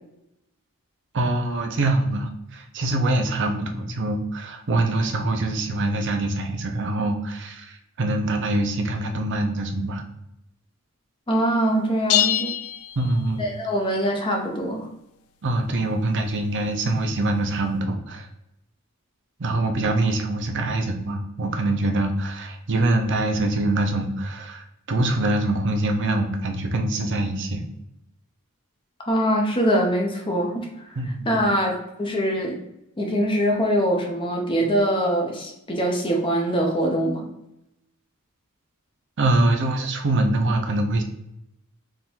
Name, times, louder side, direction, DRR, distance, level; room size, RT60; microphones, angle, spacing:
voice 1, 1.1-10.0 13.0-13.4 15.4-18.3 19.4-27.6 31.0-31.4 39.2-41.0, right 2 dB, 55° right, 5 dB, 0.7 m, -24 dB
voice 2, 11.3-12.6 13.4-14.9 29.0-30.7 31.0-32.6 33.0-37.3, equal, 25° left, 0 dB, 0.6 m, -23 dB
sound 1, 12.1-13.7, left 12 dB, 70° left, 0.3 m, -25 dB
3.7 x 2.6 x 4.3 m, 0.83 s
head